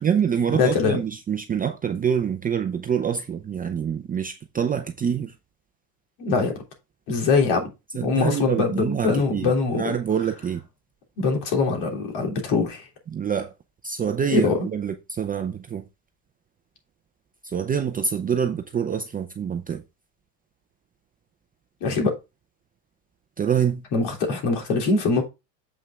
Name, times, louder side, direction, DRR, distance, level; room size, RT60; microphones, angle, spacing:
voice 1, 0.0-5.3 7.9-10.6 13.1-13.5 13.8-15.8 17.4-19.8 23.4-23.8, right 7 dB, 20° right, 0.5 m, -26 dB
voice 2, 0.5-1.0 6.2-6.5 7.1-7.7 8.0-9.9 11.2-12.9 14.3-14.6 21.8-22.1 23.9-25.2, left 4 dB, 50° left, 3.3 m, -22 dB
7.6 x 5.5 x 3.6 m
supercardioid pair, 120°, 50 cm